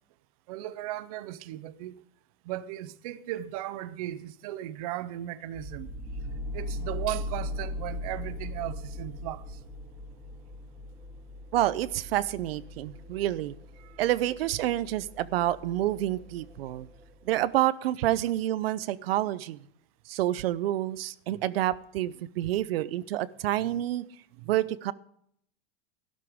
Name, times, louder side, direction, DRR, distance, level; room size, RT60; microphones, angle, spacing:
voice 1, 0.5-2.0 2.4-5.9 6.5-9.6 13.8-14.0 24.4-24.5, right 14 dB, 40° right, 0.6 m, -37 dB
sound 1, 5.5-17.5, left 1 dB, 5° right, 2.0 m, -40 dB
voice 2, 11.5-13.6 14.0-16.9 17.2-19.7 20.1-24.1 24.4-24.9, right 14 dB, 90° right, 0.7 m, -28 dB
13.0 x 12.0 x 3.6 m
supercardioid pair, 180°, 29 cm